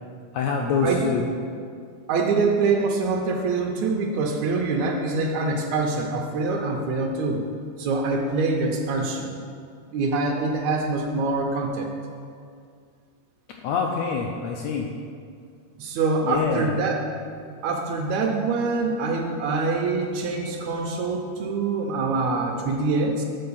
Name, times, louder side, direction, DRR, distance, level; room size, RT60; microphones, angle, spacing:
voice 1, 0.3-1.3 13.6-14.9 16.2-16.8, left 5 dB, 80° left, 1 dB, 1.6 m, -25 dB
voice 2, 2.1-7.4 7.8-9.4 9.9-11.9 15.8-17.0 17.6-23.2, right 3 dB, 75° right, 2 dB, 1.8 m, -25 dB
7.7 x 4.3 x 7.0 m, 2.2 s
omnidirectional pair, 3.5 m